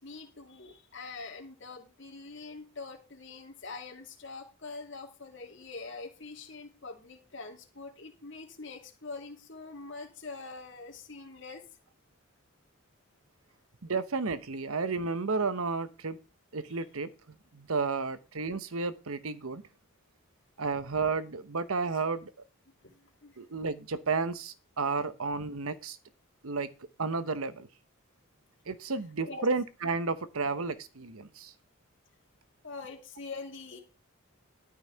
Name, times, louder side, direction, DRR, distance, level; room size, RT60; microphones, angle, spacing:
voice 1, 0.0-11.6 16.7-16.8 22.8-23.3 29.3-29.5 32.6-33.8, left 4 dB, 55° left, 2 dB, 2.5 m, -44 dB
voice 2, 13.8-16.2 16.5-17.1 17.5-19.6 20.6-22.3 23.4-26.0 26.4-26.7 27.0-27.7 28.7-31.5, right 4 dB, 80° right, 13 dB, 1.0 m, -32 dB
12.5 x 5.6 x 5.6 m, 0.31 s
head